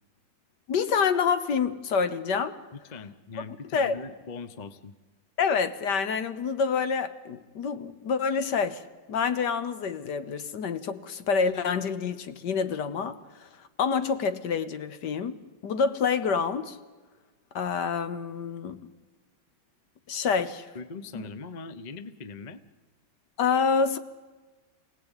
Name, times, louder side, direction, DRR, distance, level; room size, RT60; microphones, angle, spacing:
voice 1, 0.7-2.6 3.7-4.0 5.4-8.8 9.1-13.5 13.8-16.8 17.5-18.8 20.1-20.7 21.1-21.3 23.4-24.0, left 5 dB, 65° left, 1.6 m, -27 dB
voice 2, 2.7-4.9 20.7-22.6, left 4 dB, 35° left, 0.8 m, -41 dB
27.0 x 18.0 x 9.0 m
omnidirectional pair, 2.0 m